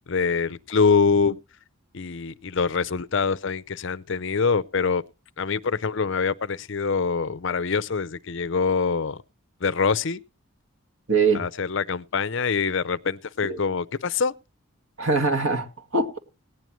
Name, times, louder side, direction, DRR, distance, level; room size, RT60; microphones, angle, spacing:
voice 1, 0.1-1.4 1.9-5.0 5.4-9.2 9.6-10.2 11.3-14.3, left 5 dB, 55° left, 0.6 m, -24 dB
voice 2, 11.1-11.4 13.4-13.6 15.0-16.2, right 4 dB, 65° right, 2.3 m, -23 dB
18.0 x 10.5 x 3.1 m
head